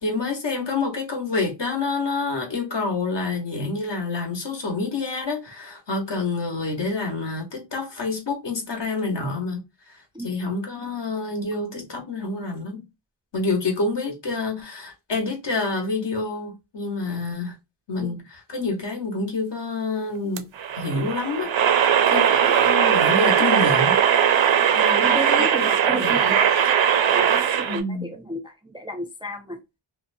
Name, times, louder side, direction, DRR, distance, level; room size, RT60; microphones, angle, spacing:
voice 1, 0.0-9.6 10.2-12.8 13.3-17.6 17.9-18.2 18.5-20.5 20.8-21.5 21.8-24.0 24.7-25.2 25.6-26.3 27.7-28.1, left 3 dB, 60° left, 1.1 m, -28 dB
sound 1, 20.4-27.8, right 8 dB, 70° right, 0.5 m, -19 dB
voice 2, 22.2-22.7 24.6-26.7 27.1-29.6, right 1 dB, 10° right, 0.3 m, -33 dB
2.7 x 2.1 x 2.5 m
wide cardioid pair, 85°, 48 cm